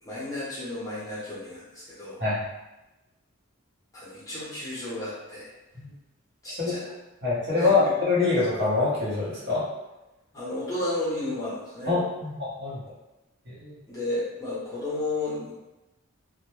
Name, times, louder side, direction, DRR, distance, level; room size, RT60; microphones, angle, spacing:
voice 1, 0.0-2.2 3.9-5.5 6.4-6.8 7.5-7.9 10.3-11.9 13.9-15.5, left 2 dB, 15° left, -8 dB, 0.6 m, -33 dB
voice 2, 7.2-9.6 11.9-12.8 13.5-13.7, left 3 dB, 50° right, -8 dB, 0.8 m, -25 dB
2.1 x 2.0 x 3.0 m, 1.0 s
head